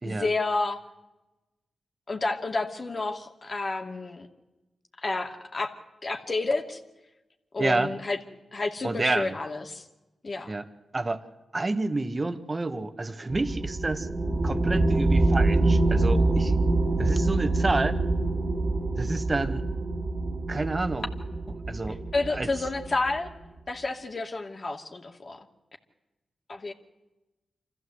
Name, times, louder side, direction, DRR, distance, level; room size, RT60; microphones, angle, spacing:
voice 1, 0.0-0.8 2.1-4.3 5.0-5.7 6.0-6.8 7.5-8.2 8.5-9.8 10.2-10.6 22.1-23.3 23.7-25.5 26.5-26.7, left 3 dB, 45° left, 3 dB, 2.5 m, -30 dB
voice 2, 7.6-7.9 8.8-9.3 10.5-10.6 10.9-11.2 11.5-14.1 14.4-16.6 17.0-18.0 19.0-19.6 20.5-21.1 21.7-22.0 22.3-22.5, right 2 dB, 35° right, 9 dB, 1.6 m, -29 dB
sound 1, 13.3-23.3, right 2 dB, 60° right, 2.4 m, -25 dB
26.0 x 15.0 x 8.0 m, 1.0 s
supercardioid pair, 45°, 0 cm